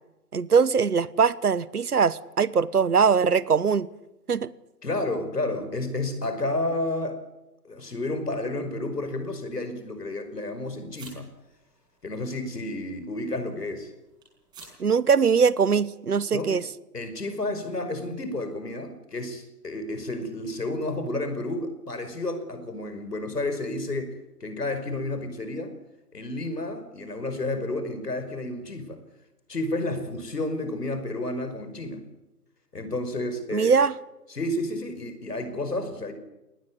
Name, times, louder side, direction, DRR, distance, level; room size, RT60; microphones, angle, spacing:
voice 1, 0.3-3.9 4.3-4.5 14.8-16.6 33.5-33.9, right 6 dB, 70° right, 20 dB, 1.2 m, -21 dB
voice 2, 4.8-7.2 7.6-11.3 12.0-13.9 16.3-16.5 16.9-25.7 26.1-29.0 29.5-32.0 32.7-33.8 34.3-36.1, left 2 dB, 75° left, 9 dB, 5.6 m, -31 dB
sound 1, 7.9-15.7, right 3 dB, 10° right, 6.5 m, -56 dB
19.5 x 19.5 x 9.8 m, 0.98 s
figure-of-eight pair, 155°, 47 cm